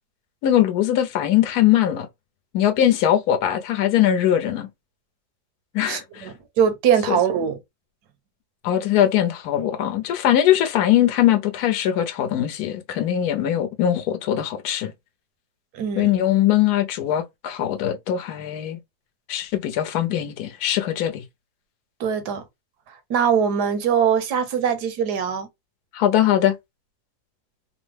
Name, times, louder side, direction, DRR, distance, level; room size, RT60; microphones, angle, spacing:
voice 1, 0.4-2.1 2.5-4.7 5.7-6.3 7.1-7.2 8.6-14.9 16.0-18.8 19.3-21.2 25.9-26.5, left 11 dB, 75° left, 1.1 m, -21 dB
voice 2, 5.9-7.6 15.7-16.1 22.0-22.4 23.1-25.5, right 7 dB, 85° right, 1.3 m, -22 dB
3.4 x 2.0 x 3.2 m
omnidirectional pair, 1.7 m